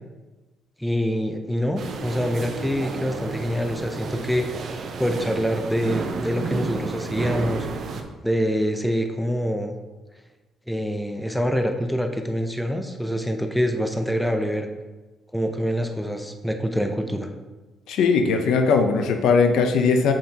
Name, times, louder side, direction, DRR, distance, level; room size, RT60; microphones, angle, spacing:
voice 1, 0.8-4.7 5.0-7.7 8.2-9.8 10.7-14.7 15.3-17.3, equal, 5° left, 5 dB, 0.7 m, -25 dB
sound 1, 1.8-8.0, right 4 dB, 65° right, 0.7 m, -31 dB
voice 2, 17.9-20.1, left 5 dB, 85° left, 6 dB, 0.6 m, -19 dB
7.6 x 5.3 x 2.9 m, 1.2 s
cardioid pair, 90°, 0 cm